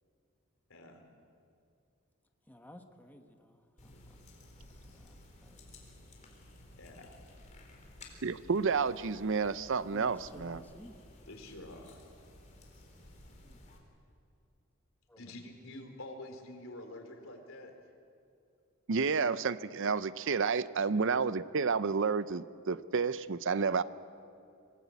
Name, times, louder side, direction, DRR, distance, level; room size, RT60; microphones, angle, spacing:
voice 1, 0.7-1.0 6.8-7.2 10.7-10.9 11.3-12.0 15.2-17.7 20.9-21.1, left 1 dB, 75° left, 4 dB, 3.5 m, -48 dB
voice 2, 2.5-3.9 4.9-5.6 9.9-11.0 13.4-13.6 15.1-15.2, equal, 10° left, 4 dB, 1.3 m, -54 dB
sound 1, 3.8-13.8, left 1 dB, 35° left, 3.8 m, -55 dB
voice 3, 8.2-10.6 18.9-23.8, right 5 dB, 65° right, 15 dB, 0.6 m, -30 dB
25.5 x 18.0 x 8.4 m, 2.4 s
head